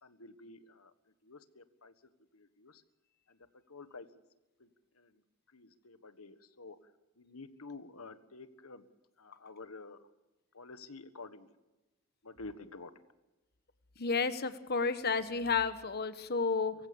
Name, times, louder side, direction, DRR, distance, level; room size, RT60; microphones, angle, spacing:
voice 1, 0.0-0.9 1.2-1.9 2.3-2.8 3.3-3.4 3.7-4.1 4.6-4.7 5.0-5.1 5.5-6.8 7.2-8.8 9.2-10.0 10.5-11.5 12.2-12.9, left 3 dB, 90° left, 11 dB, 1.6 m, -50 dB
voice 2, 14.0-16.7, left 4 dB, 50° left, 11 dB, 1.2 m, -31 dB
24.5 x 15.5 x 7.1 m, 1.0 s
head